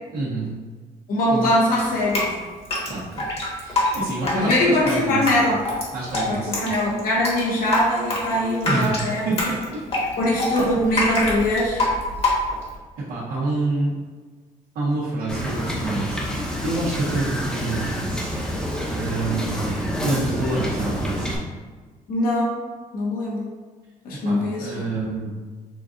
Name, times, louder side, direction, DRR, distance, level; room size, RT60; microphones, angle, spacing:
voice 1, 0.1-0.5 1.3-1.5 2.9-3.3 3.5-5.4 5.9-6.6 8.6-9.8 10.6-10.7 13.1-13.9 14.7-16.2 16.6-18.3 18.9-21.3 24.2-25.3, right 2 dB, 75° right, -12 dB, 1.5 m, -27 dB
voice 2, 1.1-2.4 4.2-5.6 6.3-9.3 10.2-11.8 22.1-22.5 22.9-23.4 24.0-24.9, left 1 dB, 80° left, -4 dB, 1.1 m, -22 dB
Drip, 1.8-12.8, left 2 dB, 45° left, 1.4 m, -25 dB
Wind / Boat Water vehicle, 15.3-21.4, equal, 5° left, 0.9 m, -28 dB
6.7 x 2.6 x 2.5 m, 1.4 s
cardioid pair, 115°, 15 cm